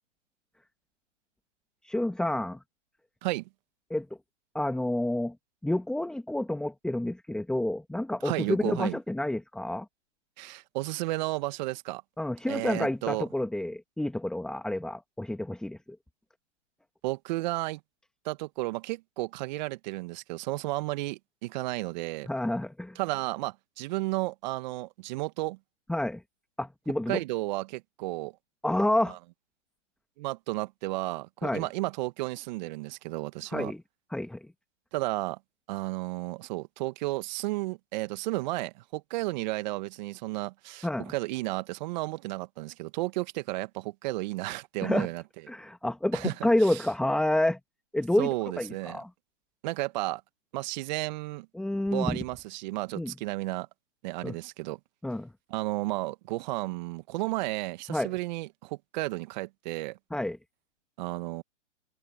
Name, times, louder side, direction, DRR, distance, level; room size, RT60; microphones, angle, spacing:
voice 1, 1.8-2.6 3.9-4.1 4.5-5.3 5.6-9.9 12.2-15.8 22.3-23.0 25.9-26.2 26.6-27.2 28.6-29.2 31.4-31.7 33.5-33.8 34.1-34.4 40.8-41.1 44.8-45.1 45.5-47.6 47.9-48.3 48.6-49.1 51.5-52.2 52.9-53.1 54.2-54.3 55.0-55.3 57.9-58.1 60.1-60.4, left 1 dB, ahead, 2.1 m, -29 dB
voice 2, 8.2-9.0 10.4-12.0 12.5-13.3 17.0-17.8 18.3-22.3 23.0-25.6 27.1-28.3 29.1-29.2 30.2-33.7 34.9-35.4 35.7-45.2 46.1-46.8 48.2-49.0 49.6-50.2 50.5-51.5 51.9-53.7 54.0-54.8 55.5-60.0 61.0-61.4, right 20 dB, 35° right, 1.9 m, -33 dB
hypercardioid pair, 135°, 37 cm